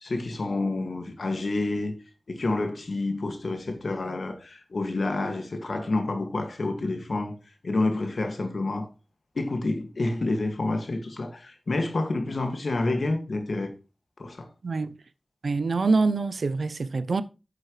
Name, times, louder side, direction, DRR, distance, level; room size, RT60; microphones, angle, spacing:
voice 1, 0.0-1.9 2.3-7.3 7.6-8.9 9.4-13.7 14.2-14.5, left 2 dB, 80° left, 1.9 m, -28 dB
voice 2, 14.6-15.0 15.4-17.2, right 3 dB, 85° right, 0.6 m, -25 dB
9.2 x 7.7 x 3.2 m
cardioid pair, 45°, 0 cm